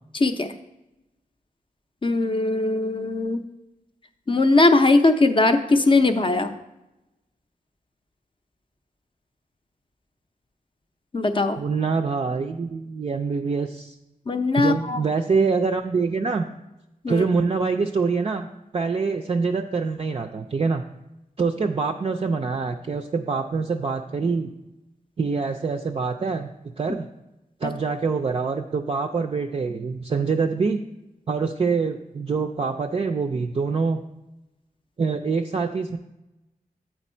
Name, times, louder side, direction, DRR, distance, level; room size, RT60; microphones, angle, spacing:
voice 1, 0.1-0.5 2.0-3.4 4.3-6.5 11.1-11.6 14.3-15.0 17.0-17.3 27.6-27.7, left 2 dB, 35° left, 8 dB, 0.5 m, -20 dB
voice 2, 11.6-13.9 14.6-16.4 17.1-20.8 21.4-24.5 25.2-26.5 26.8-27.1 27.6-30.8 31.3-34.0 35.0-36.0, right 4 dB, 40° right, 4 dB, 0.4 m, -25 dB
8.1 x 4.5 x 4.3 m, 0.94 s
wide cardioid pair, 110°, 15 cm